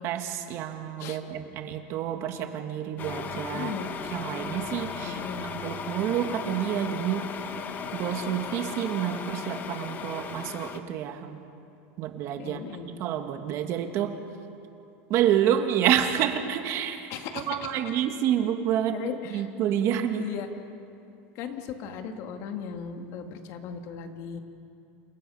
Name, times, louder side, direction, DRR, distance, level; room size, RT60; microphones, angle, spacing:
voice 1, 0.0-3.7 4.1-5.2 5.6-7.2 7.9-11.4 12.0-12.6 13.0-14.2 15.1-17.1 17.5-19.0 19.3-20.3, right 10 dB, 40° right, 6 dB, 1.9 m, -28 dB
sound 1, 3.0-10.8, left 6 dB, 25° left, 1.1 m, -36 dB
sound 2, 3.0-8.5, right 3 dB, 5° left, 5.5 m, -47 dB
voice 2, 3.5-3.9 5.1-5.5 12.3-12.9 17.1-17.7 18.9-19.5 20.2-20.5 21.4-24.4, left 7 dB, 45° left, 5 dB, 2.1 m, -37 dB
29.0 x 28.0 x 5.6 m, 2.7 s
supercardioid pair, 160°, 7 cm